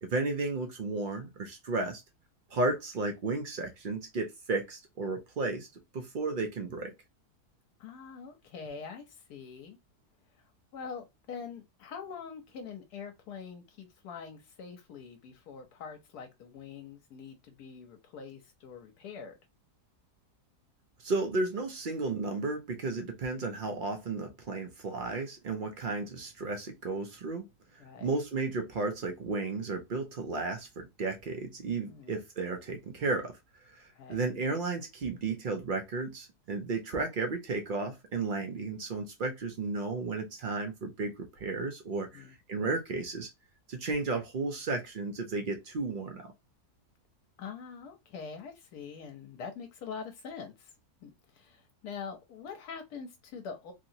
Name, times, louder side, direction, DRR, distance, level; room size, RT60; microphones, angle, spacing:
voice 1, 0.0-2.0 2.5-5.7 5.9-6.9 21.0-27.4 28.0-33.4 33.8-43.3 43.7-46.3, right 3 dB, 80° right, 0.4 m, -33 dB
voice 2, 7.8-9.8 10.3-10.5 10.7-19.4 27.8-28.2 31.9-32.1 33.9-34.3 42.1-42.3 47.4-50.7 51.0-53.7, left 6 dB, 85° left, 1.2 m, -44 dB
2.9 x 2.8 x 2.6 m
omnidirectional pair, 1.7 m